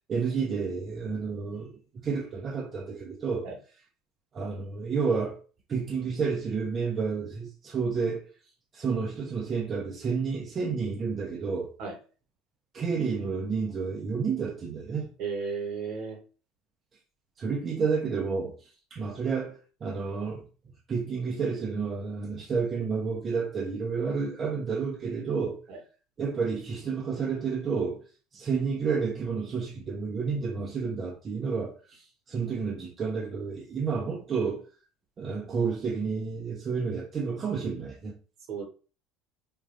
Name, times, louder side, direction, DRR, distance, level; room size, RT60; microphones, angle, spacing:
voice 1, 0.1-3.5 4.3-5.4 5.7-8.3 8.7-11.7 12.7-15.1 17.4-20.5 20.9-25.6 26.2-28.0 28.3-34.7 35.2-38.1, right 5 dB, 35° right, 0.5 m, -30 dB
voice 2, 15.2-16.2 25.7-25.8 38.5-38.6, right 5 dB, 60° right, 0.9 m, -34 dB
3.6 x 2.2 x 2.6 m
hypercardioid pair, 70°, 0 cm